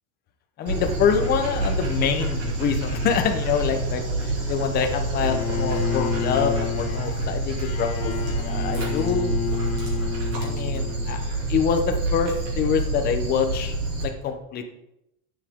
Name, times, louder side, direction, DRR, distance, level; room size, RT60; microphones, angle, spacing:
voice 1, 0.6-9.4 10.4-11.2 11.5-13.8 14.0-14.6, left 7 dB, 25° left, 6 dB, 0.7 m, -26 dB
Dog, 0.7-14.0, right 2 dB, 35° right, 2.5 m, -27 dB
Bowed string instrument, 5.2-11.3, left 8 dB, 75° left, 1.4 m, -30 dB
9.7 x 7.3 x 3.6 m, 0.86 s
supercardioid pair, 160°, 42 cm